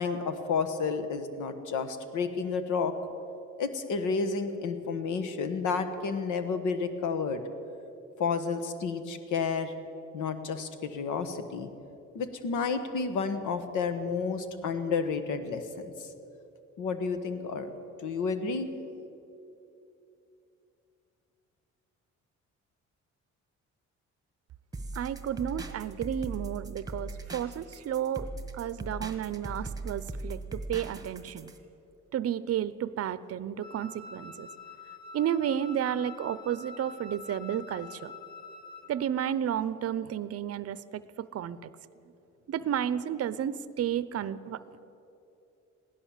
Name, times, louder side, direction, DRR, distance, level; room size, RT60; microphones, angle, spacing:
voice 1, 0.0-2.9 3.6-7.4 8.2-9.7 10.1-11.7 12.1-15.6 16.0-16.1 16.8-17.7 18.0-18.7, left 5 dB, 80° left, 10 dB, 1.2 m, -31 dB
sound 1, 24.7-31.6, right 2 dB, 10° right, 1.4 m, -39 dB
voice 2, 25.0-28.3 28.5-31.5 32.1-34.5 35.1-38.1 38.9-41.7 42.5-44.6, right 10 dB, 55° right, 16 dB, 0.6 m, -32 dB
Wind instrument woodwind instrument, 33.6-39.0, left 4 dB, 30° left, 2.3 m, -46 dB
16.0 x 11.0 x 7.3 m, 2.8 s
cardioid pair, 90°, 30 cm